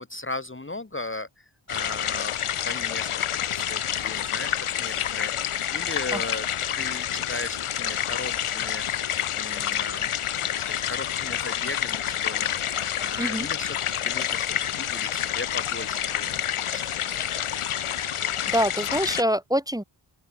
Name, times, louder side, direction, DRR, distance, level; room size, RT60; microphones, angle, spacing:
voice 1, 0.0-2.3 2.6-4.5 4.8-5.3 5.7-6.5 6.8-8.9 9.3-10.1 10.6-13.8 14.0-14.5 14.8-17.2, left 2 dB, 25° left, 1.8 m, -37 dB
sound 1, 1.7-19.2, left 10 dB, 85° left, 1.1 m, -28 dB
voice 2, 13.2-13.5 18.5-19.8, equal, 5° right, 2.4 m, -25 dB
open air
cardioid pair, 50°, 49 cm